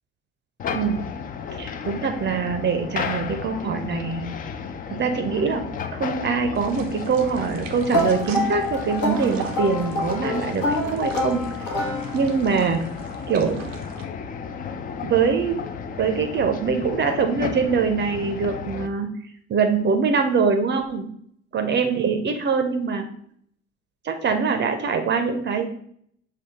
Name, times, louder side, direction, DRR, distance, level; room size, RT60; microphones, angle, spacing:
sound 1, 0.6-18.9, left 6 dB, 25° left, 0.4 m, -33 dB
voice 1, 1.6-4.3 4.9-5.6 5.9-11.4 12.1-12.8 13.3-13.7 15.0-15.6 16.0-19.1 19.5-21.1 21.5-23.1 24.0-25.7, right 5 dB, 30° right, 6 dB, 0.6 m, -23 dB
sound 2, 6.5-14.0, right 6 dB, 85° right, 0.6 m, -42 dB
sound 3, 7.9-12.5, left 1 dB, 55° left, 1.0 m, -27 dB
6.2 x 2.2 x 3.6 m, 0.66 s
figure-of-eight pair, 55°, 37 cm